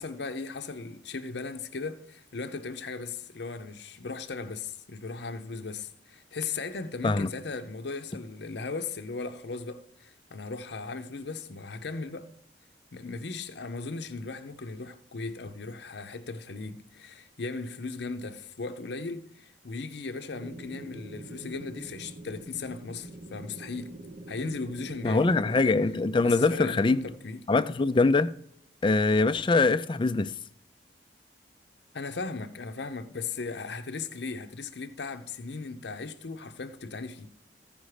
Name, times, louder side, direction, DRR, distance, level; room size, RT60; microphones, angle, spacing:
voice 1, 0.0-12.3 12.9-24.0 24.3-25.6 26.2-27.4 31.9-37.3, left 4 dB, 65° left, 0.7 m, -37 dB
sound 1, 20.3-27.2, right 1 dB, 45° right, 0.7 m, -45 dB
voice 2, 25.0-27.0 27.5-28.3 28.8-30.3, left 3 dB, 25° left, 0.4 m, -23 dB
15.0 x 5.2 x 4.8 m
head